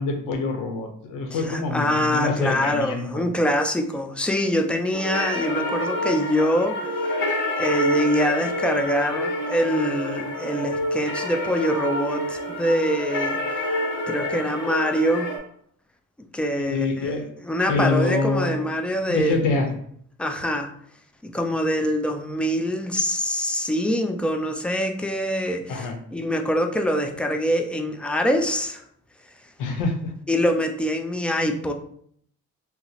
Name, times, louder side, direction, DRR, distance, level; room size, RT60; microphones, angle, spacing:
voice 1, 0.0-3.2 16.6-17.3 17.7-18.6 19.0-19.7 25.7-25.9 29.6-30.1, left 3 dB, 85° left, 4 dB, 0.7 m, -25 dB
voice 2, 1.3-6.9 7.6-13.4 14.1-15.3 16.3-19.4 20.2-20.7 21.2-28.8 30.3-31.7, equal, 5° left, 4 dB, 0.3 m, -24 dB
sound 1, 4.9-15.4, left 1 dB, 40° left, 0.9 m, -27 dB
2.8 x 2.0 x 3.9 m, 0.64 s
cardioid pair, 90°, 30 cm